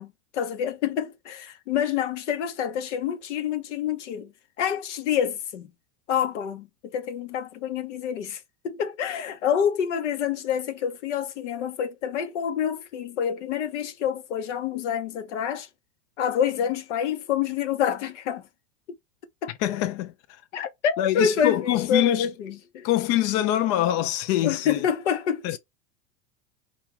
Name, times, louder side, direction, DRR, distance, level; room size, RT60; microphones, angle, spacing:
voice 1, 0.0-4.3 4.6-5.7 6.1-15.7 16.2-18.4 19.4-19.5 20.5-22.9 24.4-25.6, left 8 dB, 70° left, 1.1 m, -27 dB
voice 2, 19.6-20.4 21.0-22.3 22.8-24.8 25.4-25.6, left 13 dB, 45° left, 0.6 m, -24 dB
4.8 x 2.6 x 3.7 m
hypercardioid pair, 95°, 37 cm